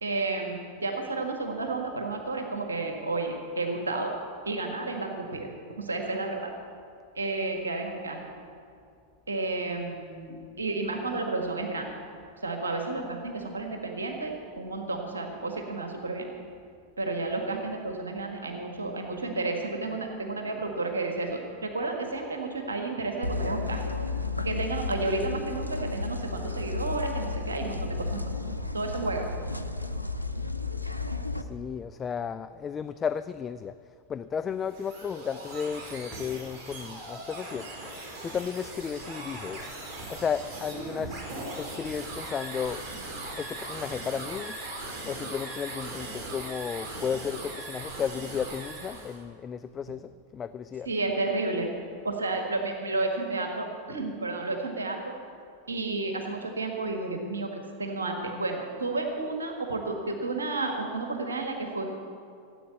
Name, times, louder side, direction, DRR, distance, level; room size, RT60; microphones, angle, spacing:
voice 1, 0.0-4.1 4.5-5.5 5.8-6.5 7.2-8.2 9.3-11.9 12.4-16.3 17.0-23.8 24.4-28.3 28.7-29.3 50.9-51.7 52.0-55.0 55.7-61.9, right 3 dB, 75° right, 3 dB, 1.6 m, -31 dB
sound 1, 23.2-31.4, left 3 dB, 90° right, 0.7 m, -32 dB
voice 2, 31.4-33.7 34.1-37.7 38.2-39.7 40.1-41.2 41.6-42.8 43.4-44.6 45.1-50.9, left 7 dB, 20° left, 12 dB, 0.4 m, -34 dB
sound 2, 34.5-49.2, right 2 dB, 35° right, 4.6 m, -39 dB
15.0 x 8.5 x 8.3 m, 2.5 s
figure-of-eight pair, 90°, 0 cm